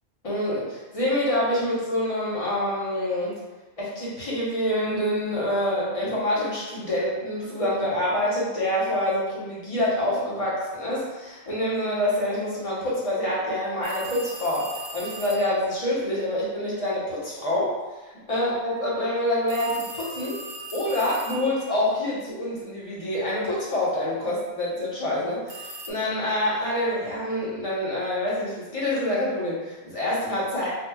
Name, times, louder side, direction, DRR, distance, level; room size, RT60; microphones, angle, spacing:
voice 1, 0.2-3.4 3.8-17.7 18.3-20.4 20.7-30.7, left 1 dB, 35° left, -7 dB, 1.0 m, -26 dB
sound 1, 13.8-15.5 19.5-21.8 25.5-25.9, right 2 dB, 85° right, 0.8 m, -38 dB
4.4 x 2.3 x 2.3 m, 1.2 s
omnidirectional pair, 1.1 m